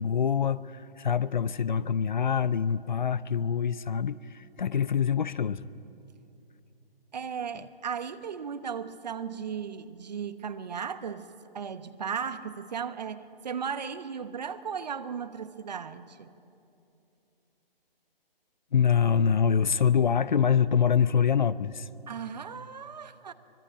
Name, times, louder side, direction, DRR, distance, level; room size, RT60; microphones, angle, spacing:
voice 1, 0.0-5.6 18.7-21.9, left 7 dB, 50° left, 17 dB, 0.6 m, -25 dB
voice 2, 7.1-11.3 11.5-16.3 22.1-23.3, right 7 dB, 45° right, 12 dB, 1.1 m, -36 dB
24.5 x 19.5 x 9.0 m, 2.7 s
figure-of-eight pair, 145°, 30 cm